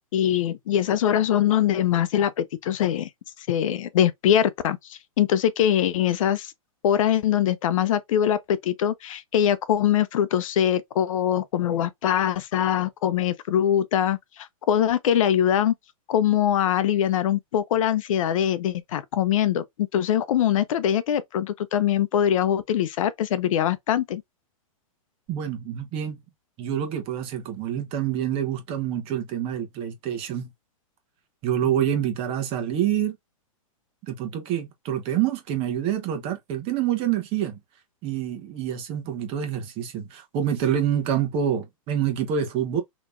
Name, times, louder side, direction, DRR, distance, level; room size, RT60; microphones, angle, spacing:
voice 1, 0.1-3.1 3.4-6.5 6.8-15.7 16.1-19.6 19.9-24.2, left 10 dB, 65° left, 0.5 m, -23 dB
voice 2, 25.3-26.2 26.6-30.5 31.4-33.2 34.0-37.6 38.0-42.8, right 9 dB, 30° right, 1.0 m, -27 dB
3.3 x 3.0 x 2.5 m
hypercardioid pair, 140°, 18 cm